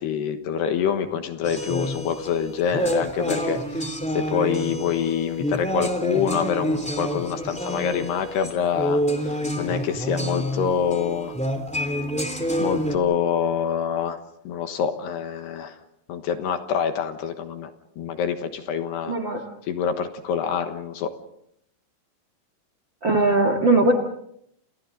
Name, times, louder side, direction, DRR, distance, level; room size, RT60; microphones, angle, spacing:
voice 1, 0.0-11.3 12.6-14.2 14.4-15.8 16.1-17.7 18.0-19.2 19.7-21.1, left 7 dB, 70° left, 7 dB, 2.9 m, -26 dB
sound 1, 1.4-13.0, equal, 5° left, 0.7 m, -28 dB
voice 2, 19.1-19.4 23.0-23.9, right 2 dB, 85° right, 6 dB, 1.0 m, -19 dB
30.0 x 29.0 x 3.9 m, 0.73 s
omnidirectional pair, 5.9 m